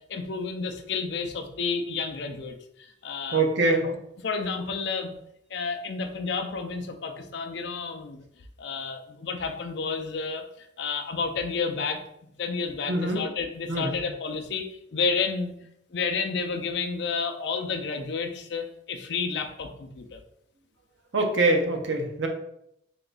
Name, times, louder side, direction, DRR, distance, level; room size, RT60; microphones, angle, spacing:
voice 1, 0.1-3.4 3.8-3.9 4.2-5.2 5.5-8.2 8.6-10.4 10.8-15.5 15.9-20.2, left 5 dB, 60° left, 5 dB, 0.4 m, -31 dB
voice 2, 3.3-3.9 12.9-13.2 13.7-14.0 21.1-22.3, right 2 dB, 70° right, 3 dB, 0.6 m, -24 dB
3.8 x 2.3 x 3.8 m, 0.74 s
head